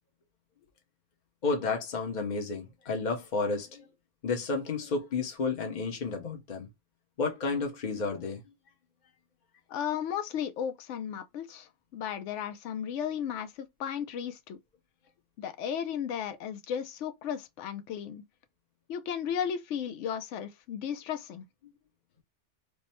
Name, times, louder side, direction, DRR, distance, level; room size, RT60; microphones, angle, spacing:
voice 1, 1.4-3.9 4.2-6.7 7.2-8.4, left 4 dB, 40° left, 0.9 m, -31 dB
voice 2, 9.7-14.6 15.4-18.2 18.9-21.4, left 8 dB, 75° left, 0.9 m, -35 dB
3.4 x 2.1 x 4.2 m
omnidirectional pair, 1.2 m